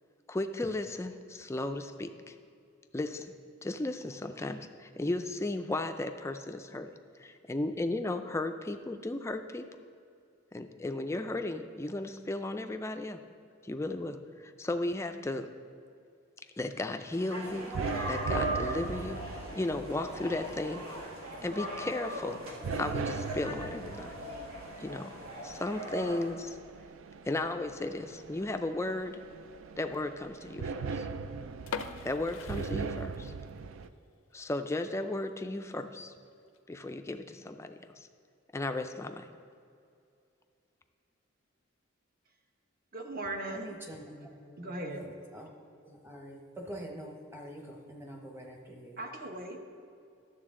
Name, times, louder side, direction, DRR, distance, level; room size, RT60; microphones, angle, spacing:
voice 1, 0.3-2.4 2.9-3.3 3.6-6.9 7.2-9.6 10.5-13.2 13.6-15.5 16.6-17.7 18.0-20.8 21.4-22.4 22.7-24.1 24.8-25.1 25.4-26.6 27.3-29.2 29.8-31.1 32.0-33.3 34.3-36.1 36.7-38.1 38.5-39.3, left 2 dB, 15° left, 7 dB, 0.3 m, -35 dB
sound 1, 17.1-26.3, right 1 dB, 85° right, 1.6 m, -39 dB
sound 2, 17.4-33.9, right 5 dB, 70° right, 0.4 m, -40 dB
sound 3, 31.6-33.5 33.8-33.9 34.5-34.6 35.1-35.2 35.4-35.5 36.3-36.6, left 5 dB, 75° left, 0.5 m, -41 dB
voice 2, 42.9-43.7 44.6-45.0 49.0-49.6, right 2 dB, 45° right, 3 dB, 0.9 m, -38 dB
voice 3, 43.5-45.5 45.8-49.0, equal, 10° right, 1 dB, 0.9 m, -46 dB
11.5 x 7.0 x 3.7 m, 2.4 s
head